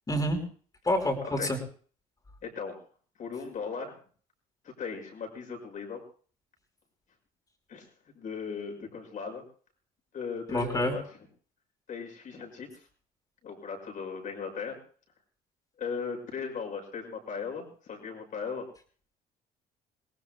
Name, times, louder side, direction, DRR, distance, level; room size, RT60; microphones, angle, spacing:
voice 1, 0.1-0.4 0.8-1.6 10.5-10.9, left 1 dB, 20° left, 3 dB, 4.7 m, -27 dB
voice 2, 2.4-2.8 3.2-3.9 4.6-6.0 7.7-7.8 8.1-9.4 10.1-11.0 11.9-12.9 13.4-14.8 15.8-18.6, left 5 dB, 50° left, 2 dB, 6.1 m, -37 dB
27.0 x 18.5 x 2.2 m, 0.43 s
cardioid pair, 110°, 17 cm